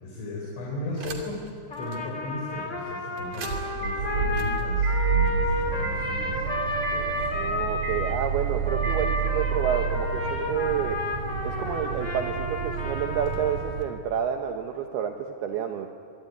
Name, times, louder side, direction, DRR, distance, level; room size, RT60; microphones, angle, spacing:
voice 1, 0.0-1.4 1.7-7.3, left 2 dB, 80° left, -3 dB, 6.5 m, -37 dB
sound 1, 1.0-1.5 1.9-2.0 3.2-13.8, right 6 dB, 50° right, 3.9 m, -29 dB
Trumpet, 1.7-8.2 8.6-14.0, left 2 dB, 25° left, 1.7 m, -32 dB
voice 2, 7.3-11.1 11.4-15.9, right 8 dB, 70° right, 5 dB, 2.7 m, -29 dB
25.5 x 23.5 x 9.5 m, 2.6 s
omnidirectional pair, 5.5 m